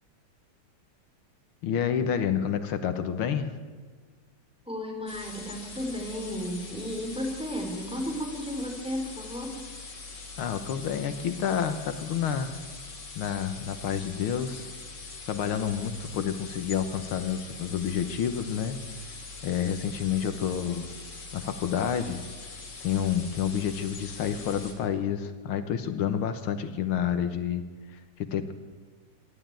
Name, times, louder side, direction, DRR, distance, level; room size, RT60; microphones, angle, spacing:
voice 1, 1.6-3.6 10.4-12.6 13.2-14.7 15.3-18.8 19.4-20.9 21.3-22.3 22.8-28.5, left 8 dB, 80° left, 10 dB, 1.9 m, -29 dB
voice 2, 4.7-9.6, equal, ahead, 0 dB, 4.0 m, -34 dB
sound 1, 5.1-24.7, left 3 dB, 55° left, 3.2 m, -43 dB
26.0 x 12.0 x 9.0 m, 1.5 s
omnidirectional pair, 2.3 m